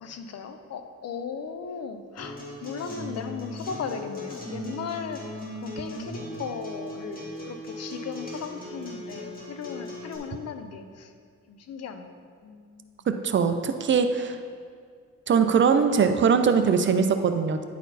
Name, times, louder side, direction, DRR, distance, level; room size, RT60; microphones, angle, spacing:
voice 1, 0.0-5.2 5.6-11.1 11.5-12.2 12.4-13.0, left 6 dB, 55° left, 8 dB, 0.7 m, -37 dB
Acoustic guitar, 2.2-10.2, equal, 30° left, 1.9 m, -38 dB
voice 2, 13.2-14.4 15.3-17.6, right 6 dB, 40° right, 8 dB, 0.5 m, -21 dB
10.5 x 4.2 x 4.1 m, 2.1 s
cardioid pair, 90°, 30 cm